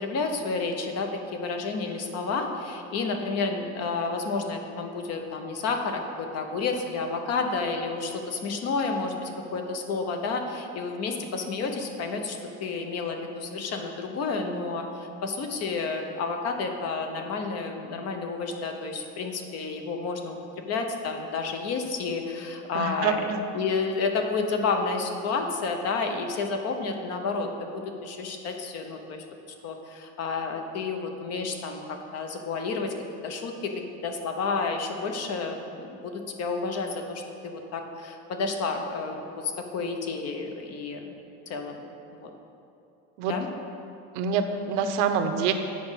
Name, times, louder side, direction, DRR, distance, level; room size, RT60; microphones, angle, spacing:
voice 1, 0.0-20.4 20.7-23.2 23.5-29.2 29.6-32.9 33.2-41.1 41.5-41.8 42.2-42.3 43.3-43.5, left 4 dB, 45° left, 5 dB, 0.8 m, -30 dB
voice 2, 22.7-23.4 43.2-43.3 44.1-45.5, right 6 dB, 80° right, 7 dB, 0.7 m, -26 dB
8.5 x 5.0 x 5.7 m, 2.7 s
cardioid pair, 150°, 36 cm